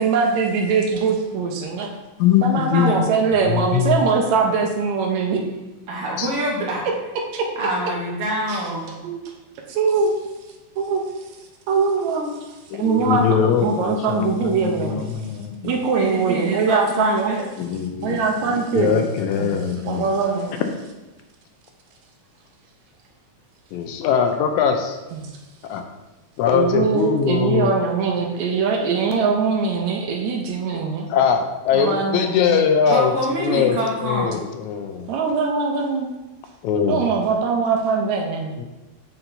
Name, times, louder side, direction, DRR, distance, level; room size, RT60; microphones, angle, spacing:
voice 1, 0.0-1.9 2.4-5.4 7.3-7.5 8.5-8.6 9.0-9.2 9.7-10.1 10.8-11.0 11.7-12.4 12.8-15.0 15.6-17.4 18.0-19.0 19.4-19.6 19.8-20.5 25.1-25.3 26.5-31.1 31.7-32.7 35.1-36.1 36.9-38.6, right 5 dB, 75° right, 2 dB, 1.9 m, -22 dB
voice 2, 2.2-3.1 3.5-4.0 6.2-6.3 12.7-15.7 17.6-18.2 18.7-20.1 23.7-25.0 25.7-25.8 26.4-27.7 30.7-30.8 31.1-33.1 33.4-33.8 34.0-35.1 36.6-37.0 38.6-38.7, left 7 dB, 80° left, 5 dB, 1.9 m, -21 dB
voice 3, 2.7-3.0 5.9-6.8 7.6-8.9 15.9-17.4 19.9-20.6 32.9-34.3, right 1 dB, 60° right, -3 dB, 1.7 m, -26 dB
9.5 x 4.4 x 2.6 m, 1.1 s
omnidirectional pair, 3.5 m